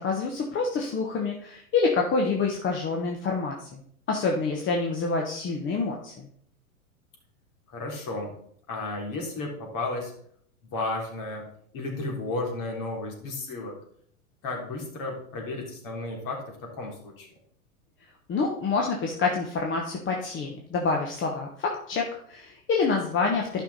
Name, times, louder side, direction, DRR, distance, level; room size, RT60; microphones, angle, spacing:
voice 1, 0.0-3.8 4.1-6.3 18.3-23.6, left 4 dB, 25° left, 1 dB, 1.3 m, -27 dB
voice 2, 7.7-8.3 8.7-10.1 10.6-11.4 11.7-13.8 14.4-17.3, left 2 dB, 45° left, 0 dB, 3.5 m, -33 dB
11.5 x 5.8 x 4.1 m, 0.64 s
hypercardioid pair, 100°, 43 cm